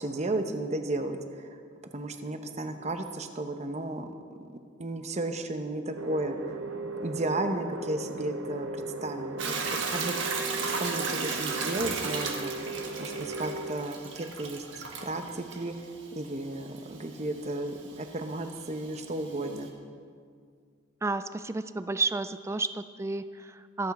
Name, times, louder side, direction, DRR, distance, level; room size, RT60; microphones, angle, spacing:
voice 1, 0.0-1.5 1.9-4.1 4.5-6.6 7.0-8.7 9.0-9.5 9.9-10.1 10.6-14.6 15.0-15.7 16.2-19.7, right 2 dB, 35° right, 6 dB, 0.9 m, -34 dB
sound 1, 6.0-13.7, right 2 dB, 80° right, 0.9 m, -37 dB
Hiss / Toilet flush / Trickle dribble, 9.4-19.7, right 4 dB, 65° right, 1.5 m, -36 dB
voice 2, 21.0-23.9, right 3 dB, 15° right, 12 dB, 0.3 m, -31 dB
23.5 x 8.3 x 4.2 m, 2.1 s
head